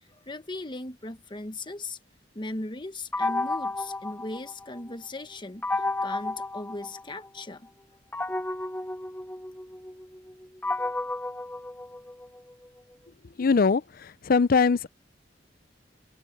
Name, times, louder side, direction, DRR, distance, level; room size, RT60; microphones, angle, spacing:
voice 1, 0.2-2.0 2.3-7.7 8.3-8.4, left 2 dB, 25° left, 1.3 m, -38 dB
sound 1, 3.1-4.9 5.6-7.4 8.1-12.4, left 2 dB, 10° left, 0.8 m, -32 dB
voice 2, 13.4-14.9, left 5 dB, 50° left, 0.5 m, -22 dB
open air
head